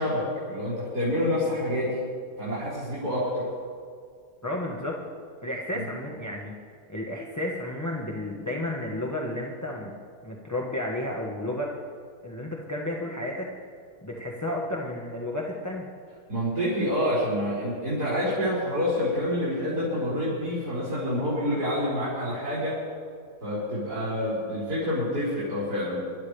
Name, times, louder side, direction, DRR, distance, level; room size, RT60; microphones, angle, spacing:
voice 1, 0.0-2.0 2.4-3.5 5.7-5.8 16.3-22.8 23.4-26.0, left 1 dB, 80° right, -12 dB, 5.1 m, -27 dB
voice 2, 4.4-5.0 5.4-6.5 6.9-9.9 10.2-11.7 12.2-13.5 14.0-15.9, left 1 dB, 10° left, -2 dB, 1.2 m, -32 dB
25.0 x 12.0 x 3.4 m, 2.1 s
omnidirectional pair, 1.7 m